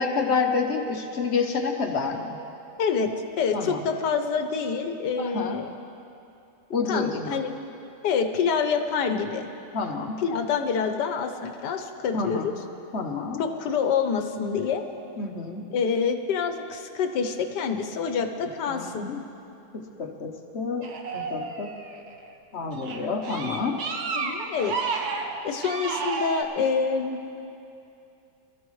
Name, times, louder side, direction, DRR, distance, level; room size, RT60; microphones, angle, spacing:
voice 1, 0.0-2.4 3.5-3.8 5.2-5.6 6.7-7.4 9.7-10.2 12.1-12.5 12.9-13.5 15.2-15.7 18.7-19.2 19.7-21.7 22.5-23.8, left 4 dB, 50° left, 3 dB, 1.0 m, -29 dB
voice 2, 2.8-3.1 3.4-5.7 6.9-7.5 8.0-9.5 10.2-12.5 13.4-14.8 15.7-19.1 24.1-25.1 25.4-27.2, left 6 dB, 90° left, 6 dB, 1.5 m, -27 dB
sound 1, 20.8-22.2 22.7-26.4, right 4 dB, 70° right, 1.4 m, -31 dB
22.5 x 13.5 x 3.2 m, 2.7 s
omnidirectional pair, 1.8 m